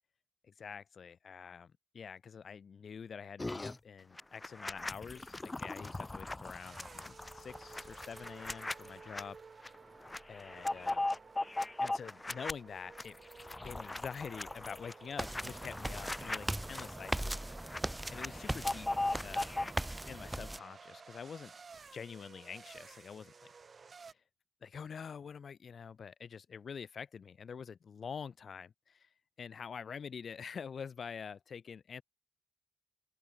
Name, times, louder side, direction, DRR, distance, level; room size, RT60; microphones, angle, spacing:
voice 1, 0.6-9.4 10.3-11.1 11.8-13.2 13.6-17.4 17.7-18.9 19.2-19.7 20.1-21.5 21.9-23.5 24.6-29.1 29.4-32.0, left 6 dB, 65° left, 2.0 m, -46 dB
sound 1, 3.4-3.8 4.2-9.2 9.6-9.8 10.0-12.5 12.9-17.8 18.1-19.7, left 2 dB, 25° left, 1.2 m, -39 dB
sound 2, 6.4-24.1, right 5 dB, 55° right, 1.6 m, -54 dB
sound 3, 15.2-20.6, right 1 dB, 10° right, 1.0 m, -39 dB
open air
cardioid pair, 50°, 0 cm